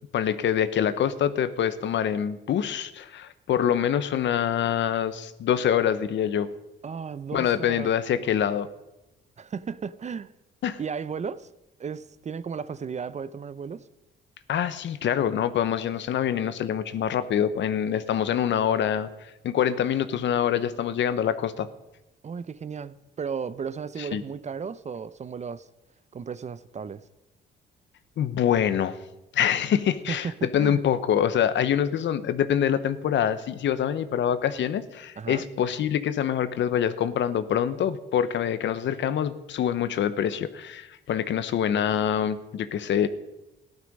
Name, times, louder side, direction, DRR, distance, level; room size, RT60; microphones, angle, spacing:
voice 1, 0.1-6.5 7.3-8.7 10.6-10.8 14.5-21.7 24.1-24.2 28.2-29.0 29.3-43.1, left 9 dB, 65° left, 14 dB, 0.9 m, -25 dB
voice 2, 6.8-7.9 9.4-10.3 10.8-11.5 11.8-13.9 22.2-25.7 26.1-27.0 30.1-30.8 35.2-35.4, right 6 dB, 35° right, 16 dB, 0.6 m, -34 dB
14.5 x 12.0 x 5.3 m, 0.95 s
cardioid pair, 90°, 20 cm